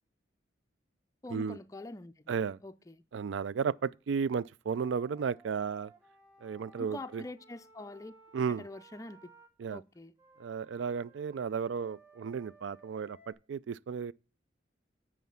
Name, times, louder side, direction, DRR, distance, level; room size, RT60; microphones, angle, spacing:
voice 1, 1.2-2.1 2.6-3.0 6.8-8.1 8.6-9.2 9.7-10.1, left 2 dB, 15° left, 0.4 m, -44 dB
voice 2, 2.3-2.6 3.1-5.9 6.4-7.2 8.3-8.7 9.6-9.8 10.4-14.1, right 6 dB, 80° right, 0.4 m, -34 dB
Wind instrument woodwind instrument, 4.7-9.5 10.2-13.3, right 3 dB, 15° right, 2.1 m, -59 dB
9.4 x 4.7 x 5.6 m
head